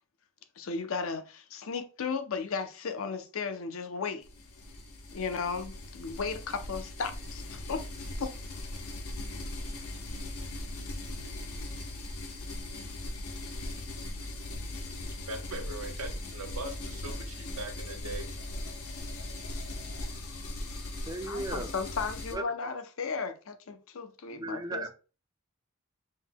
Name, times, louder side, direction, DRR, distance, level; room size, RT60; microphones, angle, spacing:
voice 1, 0.6-4.3 5.1-7.8 8.2-8.3 21.3-24.9, left 5 dB, 65° left, 0.5 m, -35 dB
sound 1, 4.2-22.3, left 1 dB, 90° left, 0.8 m, -39 dB
voice 2, 15.2-18.3, right 2 dB, 80° right, 0.9 m, -40 dB
voice 3, 21.1-21.7 22.3-22.7 24.3-24.9, right 2 dB, 15° right, 0.4 m, -36 dB
5.4 x 2.2 x 3.4 m
head